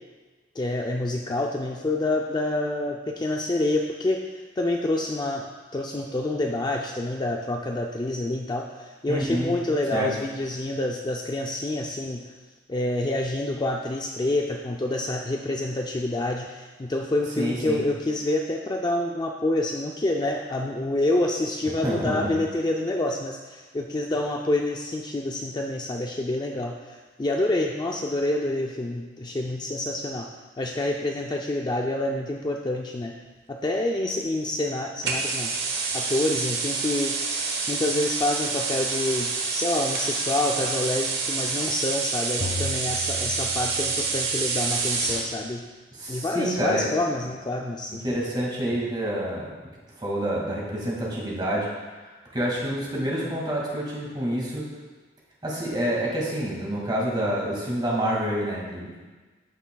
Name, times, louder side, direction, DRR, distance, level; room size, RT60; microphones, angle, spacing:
voice 1, 0.6-4.2 4.6-12.2 12.7-30.3 30.6-33.2 33.5-35.5 35.9-37.2 37.7-45.6 46.1-48.0, left 1 dB, 20° left, 1 dB, 0.4 m, -27 dB
voice 2, 9.1-9.5 9.9-10.1 17.4-17.8 21.8-22.3 45.9-46.9 47.9-49.5 50.0-51.7 52.1-54.7 55.4-58.9, right 1 dB, 25° right, -4 dB, 2.0 m, -28 dB
sound 1, 35.0-45.3, right 4 dB, 60° right, 1.1 m, -28 dB
sound 2, 42.4-44.3, left 1 dB, 50° left, 1.1 m, -35 dB
14.5 x 5.8 x 2.3 m, 1.3 s
head